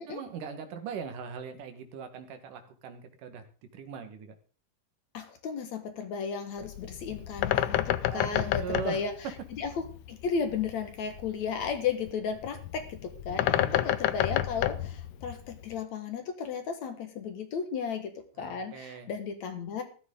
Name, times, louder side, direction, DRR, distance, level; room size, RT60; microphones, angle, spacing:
voice 1, 0.0-3.4 3.7-4.3 8.1-9.0 13.3-13.9 18.4-19.1, right 6 dB, 80° right, 7 dB, 3.1 m, -40 dB
voice 2, 5.1-9.1 9.5-19.8, left 6 dB, 65° left, 7 dB, 2.6 m, -34 dB
Bird, 6.6-15.7, left 13 dB, 90° left, 1.4 m, -31 dB
14.0 x 13.0 x 3.8 m, 0.39 s
omnidirectional pair, 3.7 m